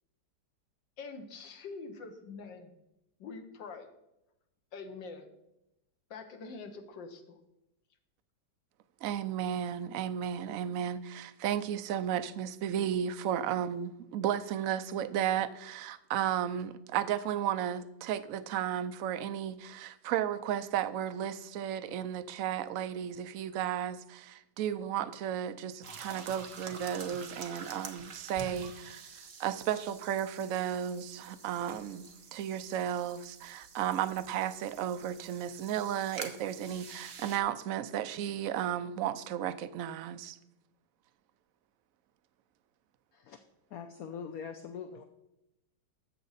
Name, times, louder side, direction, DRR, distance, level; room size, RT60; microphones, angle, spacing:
voice 1, 1.0-2.7 3.2-3.9 4.7-5.3 6.1-7.4, left 4 dB, 90° left, 1.7 m, -45 dB
voice 2, 9.0-29.0 29.4-40.4, right 10 dB, 70° right, 0.8 m, -34 dB
sound 1, 25.8-37.4, right 5 dB, 50° right, 1.3 m, -48 dB
voice 3, 43.7-45.0, left 6 dB, 65° left, 1.0 m, -42 dB
13.0 x 7.4 x 4.1 m
omnidirectional pair, 1.9 m